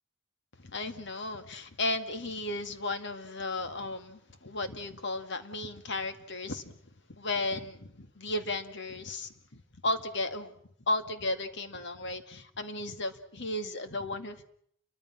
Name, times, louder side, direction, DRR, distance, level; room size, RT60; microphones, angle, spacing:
voice 1, 0.6-6.7 7.1-10.6 10.9-14.4, left 2 dB, 60° left, 9 dB, 2.3 m, -34 dB
29.5 x 23.5 x 6.0 m, 0.66 s
head